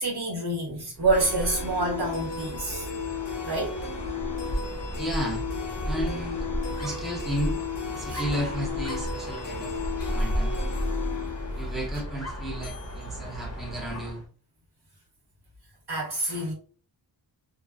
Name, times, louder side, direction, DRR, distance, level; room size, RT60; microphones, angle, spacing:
voice 1, 0.0-2.9 3.4-3.7 8.1-8.2 15.9-16.5, right 2 dB, 60° right, 1.3 m, -27 dB
Dog, 1.0-14.3, equal, 35° left, 1.0 m, -33 dB
sound 1, 1.1-12.9, left 5 dB, 70° left, 0.7 m, -35 dB
voice 2, 5.0-5.4 5.8-6.5 6.8-7.6 7.9-9.7 10.0-10.5 11.6-14.2, equal, ahead, 0.8 m, -33 dB
2.5 x 2.3 x 2.3 m
wide cardioid pair, 55°, 43 cm